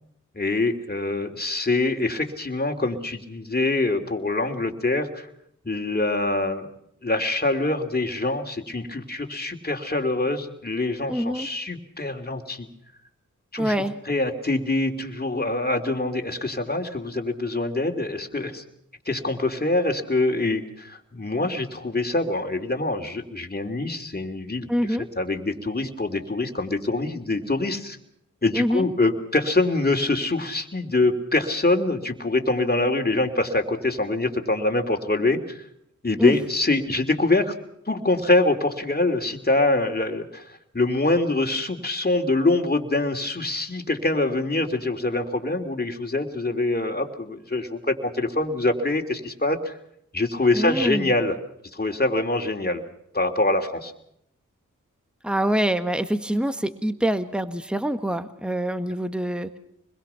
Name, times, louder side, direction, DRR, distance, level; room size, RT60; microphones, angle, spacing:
voice 1, 0.3-5.3 5.6-6.7 7.0-12.7 13.5-18.6 19.0-28.0 28.4-35.6 36.0-37.5 37.9-49.7 50.1-51.4 51.7-52.8 53.1-53.9, left 2 dB, 30° left, 4 dB, 3.1 m, -24 dB
voice 2, 11.1-11.5 13.6-14.0 24.7-25.1 28.5-28.8 36.2-36.4 50.5-51.1 55.2-59.6, equal, 5° right, 10 dB, 1.6 m, -25 dB
25.5 x 21.5 x 5.8 m, 0.74 s
cardioid pair, 45°, 32 cm